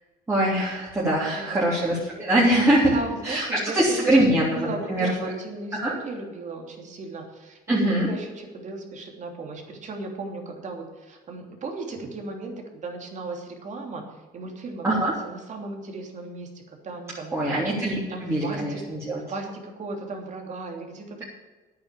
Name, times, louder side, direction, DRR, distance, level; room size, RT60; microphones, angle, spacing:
voice 1, 0.3-3.0 3.2-5.3 5.7-5.9 7.7-8.1 14.8-15.1 17.3-19.2, right 1 dB, 15° right, -8 dB, 3.4 m, -23 dB
voice 2, 1.3-1.7 2.9-14.0 14.3-16.5 16.8-17.7 18.1-18.8 19.3-21.2, right 3 dB, 45° right, 2 dB, 3.0 m, -36 dB
10.5 x 9.0 x 7.5 m, 1.2 s
cardioid pair, 110°, 17 cm